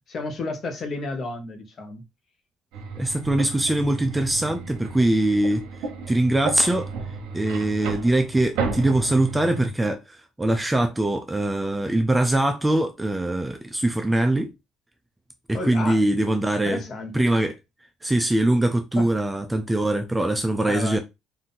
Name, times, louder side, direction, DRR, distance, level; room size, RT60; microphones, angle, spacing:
voice 1, 0.1-2.0 15.5-16.1 16.6-17.2 19.0-19.2 20.7-21.0, left 3 dB, 35° left, 1.1 m, -32 dB
sound 1, 2.7-9.7, right 4 dB, 80° right, 1.1 m, -33 dB
voice 2, 3.0-5.6 6.1-6.9 7.3-14.5 15.5-16.8 17.1-17.5 18.0-21.0, right 1 dB, 10° right, 0.5 m, -22 dB
4.0 x 2.7 x 3.9 m
cardioid pair, 135°, 0 cm